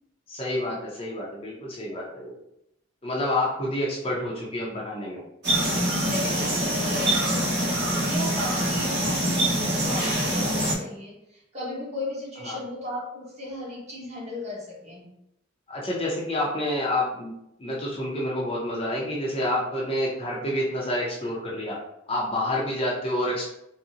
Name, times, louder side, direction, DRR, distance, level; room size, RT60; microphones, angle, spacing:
voice 1, 0.3-2.3 3.0-5.2 9.9-10.0 12.5-12.6 15.7-17.3 17.6-21.8 22.1-23.5, left 1 dB, 30° left, -4 dB, 0.6 m, -28 dB
sound 1, 5.4-10.7, right 1 dB, 55° right, 1.0 m, -24 dB
voice 2, 6.1-15.1, left 1 dB, 35° right, -6 dB, 1.1 m, -36 dB
3.7 x 2.0 x 2.7 m, 0.80 s
head